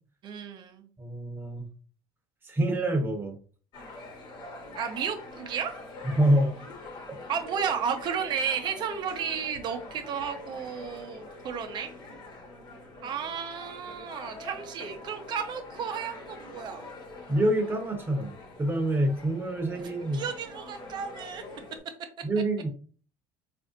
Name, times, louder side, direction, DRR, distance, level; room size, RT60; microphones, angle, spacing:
voice 1, 0.2-0.9 4.8-5.7 7.3-12.0 13.0-16.8 19.8-21.4, right 7 dB, 50° right, 6 dB, 0.7 m, -33 dB
voice 2, 1.0-1.7 2.4-3.3 6.2-6.6 17.3-18.3 18.6-20.2 22.2-22.7, right 1 dB, 20° right, 3 dB, 1.0 m, -26 dB
sound 1, 3.7-21.8, left 2 dB, 50° left, 1.2 m, -45 dB
4.1 x 2.6 x 2.6 m, 0.40 s
supercardioid pair, 95°, 10 cm